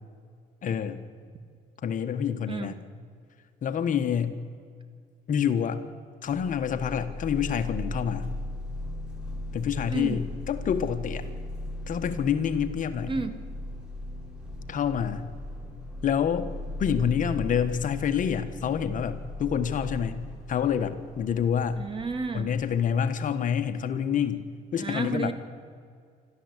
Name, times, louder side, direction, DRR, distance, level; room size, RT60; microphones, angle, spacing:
voice 1, 0.6-1.0 1.8-2.8 3.6-4.4 5.3-5.8 6.2-8.3 9.5-11.3 11.9-13.1 14.7-15.2 16.0-16.5 16.8-21.8 22.3-24.4 24.7-25.3, left 8 dB, 50° left, 9 dB, 1.5 m, -27 dB
sound 1, 6.3-22.9, left 1 dB, 5° right, 5.6 m, -38 dB
voice 2, 9.9-10.2 13.1-13.4 21.8-22.5 24.8-25.3, right 4 dB, 30° right, 9 dB, 1.9 m, -32 dB
26.5 x 13.5 x 8.3 m, 2.2 s
cardioid pair, 110°, 17 cm